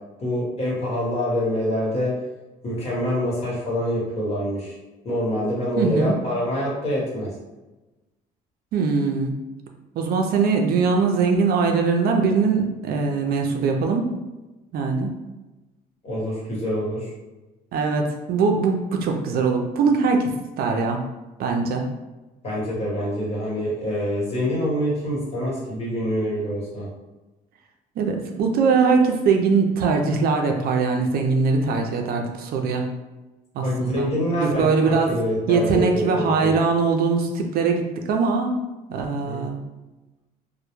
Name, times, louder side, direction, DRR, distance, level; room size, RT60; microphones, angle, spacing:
voice 1, 0.2-2.1 2.6-4.7 5.0-7.3 16.0-17.1 22.4-26.9 33.6-36.5 39.3-39.4, equal, 40° left, -5 dB, 1.1 m, -25 dB
voice 2, 5.8-6.1 8.7-9.3 10.0-14.1 14.7-15.1 17.7-20.3 20.6-21.0 21.4-21.9 28.0-32.8 33.5-34.1 34.4-35.1 35.5-38.6 38.9-39.6, right 4 dB, 65° right, 3 dB, 0.4 m, -21 dB
2.1 x 2.1 x 2.9 m, 1.1 s
cardioid pair, 110°, 17 cm